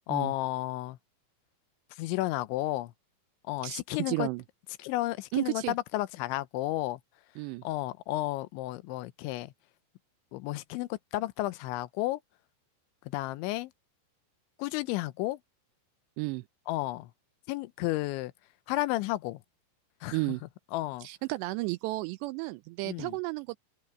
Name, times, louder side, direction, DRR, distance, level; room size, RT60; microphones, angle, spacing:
voice 1, 0.1-1.0 1.9-2.9 3.5-4.3 4.8-7.0 7.6-9.5 10.3-12.2 13.1-13.7 14.6-15.4 16.7-17.1 17.5-18.3 18.7-19.4 20.0-20.4 20.7-21.1 22.9-23.2, left 17 dB, 90° left, 3.2 m, -32 dB
voice 2, 4.1-4.4 5.3-5.7 7.4-7.6 16.2-16.5 20.1-20.4 21.0-23.6, right 22 dB, 85° right, 2.6 m, -33 dB
omnidirectional pair, 5.2 m